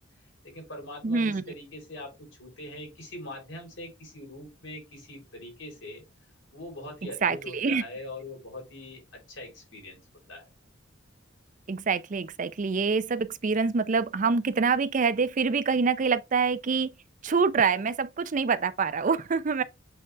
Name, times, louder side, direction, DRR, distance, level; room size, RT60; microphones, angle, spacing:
voice 1, 0.4-6.0 6.5-10.0 10.3-10.5, left 1 dB, 75° left, 3.8 m, -42 dB
voice 2, 1.0-1.4 7.2-7.8 11.7-16.9 17.2-19.6, right 5 dB, 40° right, 0.5 m, -25 dB
7.8 x 3.9 x 3.3 m
head